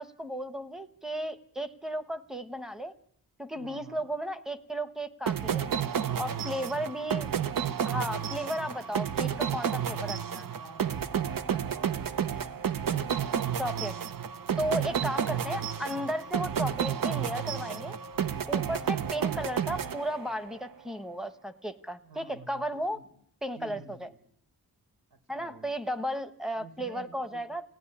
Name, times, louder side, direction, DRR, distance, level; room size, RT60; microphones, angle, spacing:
voice 1, 0.0-2.9 3.4-5.7 6.2-7.3 7.9-10.5 13.6-13.9 14.6-18.0 18.5-23.0 23.4-24.1 25.3-27.6, equal, ahead, 9 dB, 1.1 m, -34 dB
voice 2, 3.5-4.0 6.0-7.1 10.5-13.8 14.8-15.1 18.7-19.1 22.0-23.1 23.5-24.2 25.1-25.7 26.5-27.4, right 3 dB, 80° right, 6 dB, 4.4 m, -51 dB
sound 1, 5.3-20.6, right 8 dB, 60° right, 1.0 m, -31 dB
sound 2, 10.9-19.6, right 1 dB, 40° right, 3.1 m, -52 dB
29.5 x 17.5 x 9.9 m, 0.71 s
wide cardioid pair, 180°, 38 cm